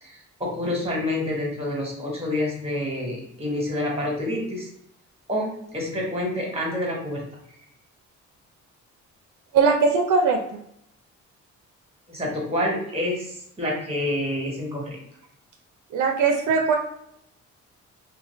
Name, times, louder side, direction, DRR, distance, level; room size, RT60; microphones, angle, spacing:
voice 1, 0.0-4.7 5.3-7.2 12.1-15.0, left 1 dB, 20° right, -2 dB, 1.2 m, -28 dB
voice 2, 9.5-10.6 15.9-16.7, right 4 dB, 75° right, 3 dB, 0.5 m, -20 dB
2.4 x 2.2 x 3.2 m, 0.73 s
cardioid pair, 90°, 30 cm